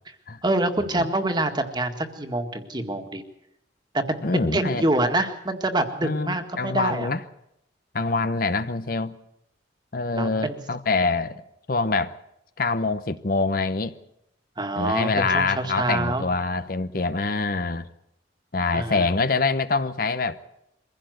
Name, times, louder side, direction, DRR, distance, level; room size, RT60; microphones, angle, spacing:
voice 1, 0.4-3.2 3.9-7.1 10.1-10.6 14.6-16.3 18.7-19.1, right 2 dB, 25° right, 1.9 m, -26 dB
voice 2, 4.2-4.9 6.0-7.2 7.9-9.2 9.9-11.4 11.7-12.2 12.6-13.9 14.7-17.9 18.5-20.6, left 3 dB, 55° left, 0.9 m, -25 dB
24.0 x 16.0 x 8.0 m
head